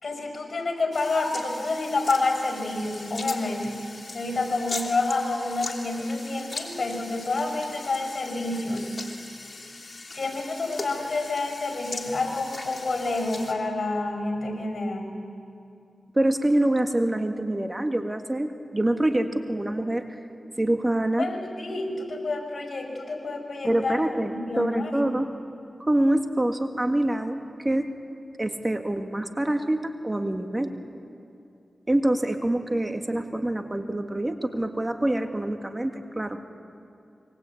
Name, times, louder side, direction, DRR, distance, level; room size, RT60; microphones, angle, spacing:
voice 1, 0.0-3.8 4.1-9.1 10.1-15.2 21.2-25.2, left 2 dB, 65° left, 4 dB, 5.7 m, -28 dB
sound 1, 0.9-13.5, left 3 dB, 50° left, 3.3 m, -39 dB
voice 2, 16.1-20.0 20.6-21.3 23.6-24.3 24.6-25.3 25.8-27.9 28.4-30.7 31.9-36.4, right 1 dB, 25° right, 5 dB, 1.8 m, -25 dB
26.5 x 23.5 x 8.6 m, 2.6 s
cardioid pair, 50°, 0 cm